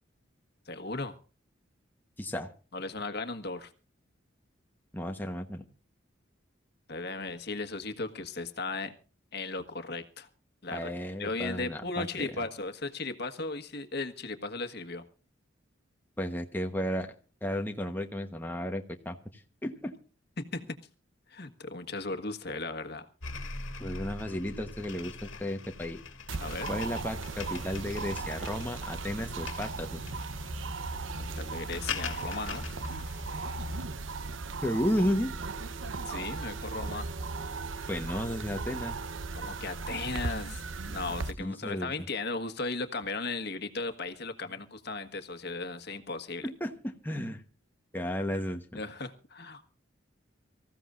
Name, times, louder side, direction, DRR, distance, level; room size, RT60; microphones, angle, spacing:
voice 1, 0.7-1.1 2.7-3.7 6.9-8.9 9.3-10.3 10.6-10.9 11.2-15.0 20.4-20.8 21.3-23.1 26.4-26.7 31.3-32.6 36.1-37.1 39.3-46.5 48.7-49.7, left 3 dB, 55° left, 1.5 m, -36 dB
voice 2, 2.2-2.5 4.9-5.6 10.7-12.3 16.2-17.1 17.4-20.0 23.8-26.0 26.7-30.0 34.6-35.3 37.9-39.0 41.4-41.9 46.4-47.4 47.9-48.8, equal, 10° left, 1.1 m, -33 dB
sound 1, 23.2-33.8, left 3 dB, 90° left, 1.8 m, -41 dB
sound 2, 26.3-41.3, right 3 dB, 80° right, 0.9 m, -37 dB
25.0 x 15.0 x 2.5 m
head